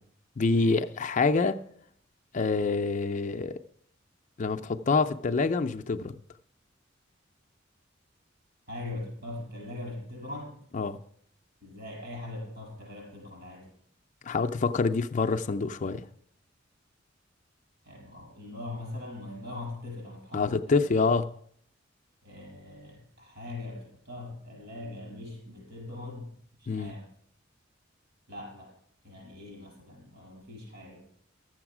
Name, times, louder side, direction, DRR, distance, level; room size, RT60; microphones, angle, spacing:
voice 1, 0.4-1.6 2.3-3.5 4.4-6.2 10.7-11.0 14.2-16.1 20.3-21.3 26.7-27.0, left 4 dB, 40° left, 0.5 m, -26 dB
voice 2, 8.7-10.6 11.6-13.7 17.8-20.8 22.2-26.3 26.6-27.1 28.3-28.7 29.0-31.1, left 2 dB, 60° right, 6.7 m, -41 dB
12.0 x 7.9 x 6.0 m
head